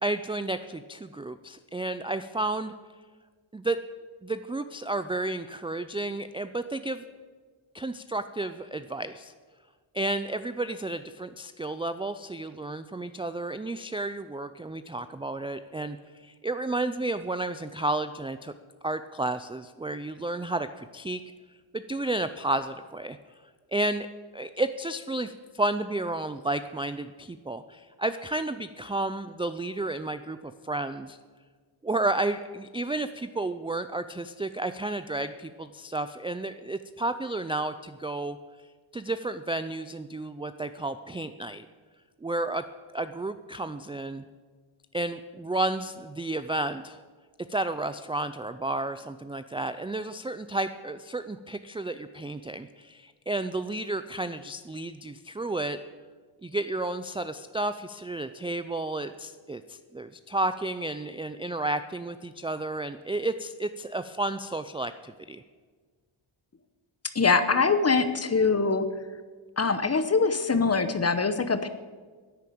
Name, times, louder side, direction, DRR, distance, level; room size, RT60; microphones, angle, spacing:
voice 1, 0.0-2.7 3.5-3.8 4.2-7.0 7.7-9.3 9.9-18.5 18.8-21.2 21.7-23.2 23.7-24.1 24.3-31.2 31.8-38.4 38.9-41.7 42.2-42.6 42.9-44.2 44.9-47.0 47.5-55.8 56.4-65.4, right 2 dB, 10° right, 11 dB, 0.3 m, -32 dB
voice 2, 67.1-68.9 69.6-71.7, left 4 dB, 30° left, 11 dB, 1.0 m, -23 dB
10.5 x 9.6 x 8.6 m, 1.5 s
wide cardioid pair, 110°, 50 cm